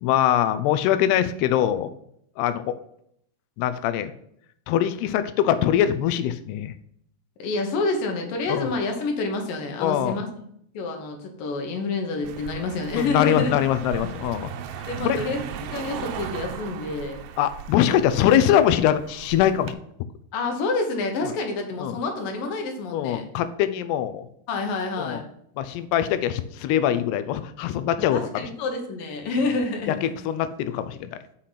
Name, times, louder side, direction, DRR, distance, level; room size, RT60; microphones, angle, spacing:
voice 1, 0.0-1.9 2.4-2.8 3.6-4.1 4.7-6.7 8.5-8.7 9.8-10.2 13.0-14.5 15.0-15.2 17.4-19.8 21.8-22.0 22.9-24.3 25.0-25.2 25.6-28.5 29.9-31.2, left 11 dB, 85° left, 12 dB, 2.6 m, -23 dB
voice 2, 7.4-10.4 10.7-13.6 14.9-17.2 20.3-23.2 24.5-25.2 28.1-30.1, left 3 dB, 65° left, 3 dB, 2.6 m, -28 dB
Car passing by, 12.2-19.7, right 8 dB, 85° right, 2.6 m, -37 dB
6.6 x 5.8 x 5.7 m, 0.70 s
omnidirectional pair, 4.8 m